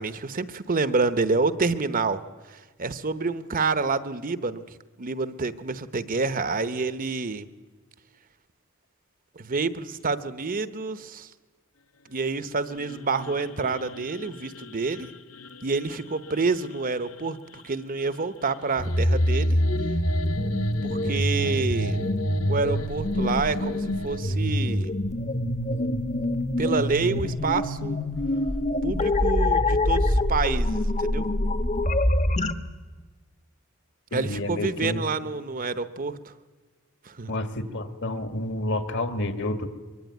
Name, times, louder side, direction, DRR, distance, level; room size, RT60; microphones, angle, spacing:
voice 1, 0.0-2.2 2.5-4.6 5.0-7.4 9.4-11.3 12.1-15.1 15.6-17.4 17.6-19.6 20.8-22.0 22.5-24.9 26.6-28.0 28.8-31.2 34.1-36.3 37.0-37.3, right 4 dB, 40° right, 12 dB, 1.0 m, -28 dB
sound 1, 12.3-24.2, left 1 dB, 80° left, 1.2 m, -41 dB
sound 2, 18.8-32.5, left 1 dB, 35° left, 1.1 m, -25 dB
voice 2, 34.1-35.1 37.3-39.7, left 1 dB, 60° left, 8 dB, 2.1 m, -29 dB
23.5 x 23.0 x 9.5 m, 1.3 s
head